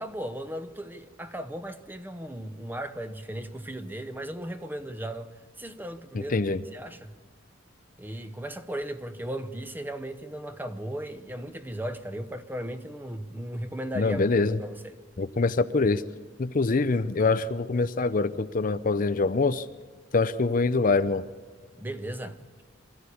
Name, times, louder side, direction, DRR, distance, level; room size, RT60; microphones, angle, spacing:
voice 1, 0.0-5.3 5.6-7.1 8.0-14.3 14.6-14.9 21.7-22.6, right 1 dB, 10° right, 0.9 m, -36 dB
voice 2, 14.0-14.6 15.2-16.0 16.4-19.7 20.1-21.2, left 3 dB, 45° left, 0.6 m, -24 dB
24.5 x 14.5 x 8.5 m
head